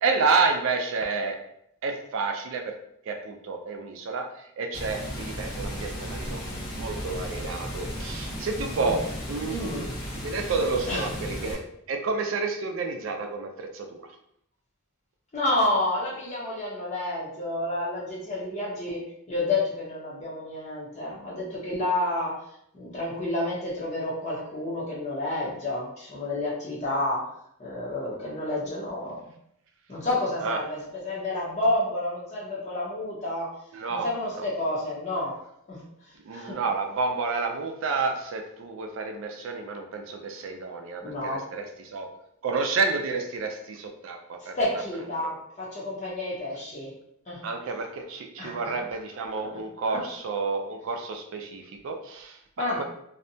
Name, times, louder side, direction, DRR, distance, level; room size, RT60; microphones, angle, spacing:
voice 1, 0.0-1.4 1.8-2.7 3.1-6.4 6.7-9.0 9.3-9.9 10.2-11.6 11.9-14.0 30.4-30.6 33.7-34.1 34.4-34.5 36.3-42.1 42.4-44.8 45.1-45.3 47.4-52.8, right 4 dB, 70° right, 4 dB, 0.4 m, -30 dB
Water, 4.7-11.5, equal, 80° left, 0.8 m, -35 dB
voice 2, 9.5-9.8 10.9-11.1 15.3-22.4 22.7-27.3 27.6-29.2 29.9-33.5 33.9-35.3 35.7-35.8 36.3-36.6 41.0-41.4 44.6-46.9 47.3-47.4 48.4-48.7 49.9-50.0 52.6-52.8, left 1 dB, 35° left, -5 dB, 0.6 m, -30 dB
2.6 x 2.1 x 2.6 m, 0.73 s
head